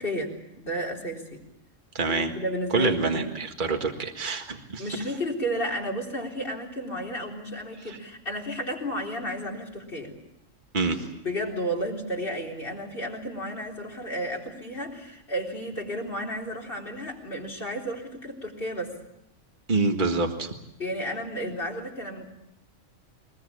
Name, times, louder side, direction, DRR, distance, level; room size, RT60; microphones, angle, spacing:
voice 1, 0.0-1.4 2.1-3.2 4.8-10.1 11.2-19.0 20.8-22.3, equal, 45° left, 1 dB, 4.3 m, -32 dB
voice 2, 2.0-2.3 2.7-4.8 7.9-8.0 10.7-11.0 19.7-20.5, right 3 dB, 40° right, 4 dB, 1.9 m, -26 dB
23.0 x 21.0 x 8.6 m, 0.82 s
omnidirectional pair, 1.3 m